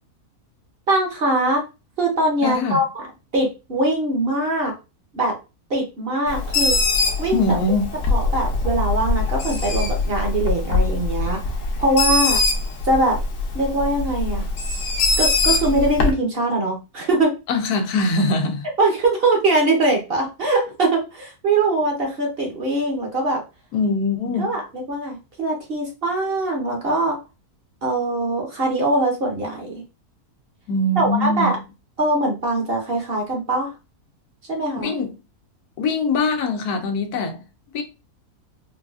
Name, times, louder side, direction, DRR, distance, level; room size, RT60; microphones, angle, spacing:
voice 1, 0.9-1.6 2.0-3.0 3.3-4.7 5.1-5.3 5.7-6.8 7.2-7.6 8.1-11.4 11.8-12.4 12.8-13.2 13.5-14.5 15.2-17.3 18.8-23.4 24.4-27.2 27.8-29.8 31.0-31.6 32.0-33.7 34.5-34.9, right 2 dB, 45° right, 0.9 m, -22 dB
voice 2, 2.4-2.8 7.3-7.9 17.5-18.7 23.7-24.6 30.7-31.5 34.8-35.2 35.8-37.4 37.7-37.8, left 2 dB, 85° left, 1.2 m, -22 dB
Bird, 6.3-16.1, left 3 dB, 65° left, 1.1 m, -22 dB
3.9 x 2.4 x 2.3 m
omnidirectional pair, 1.6 m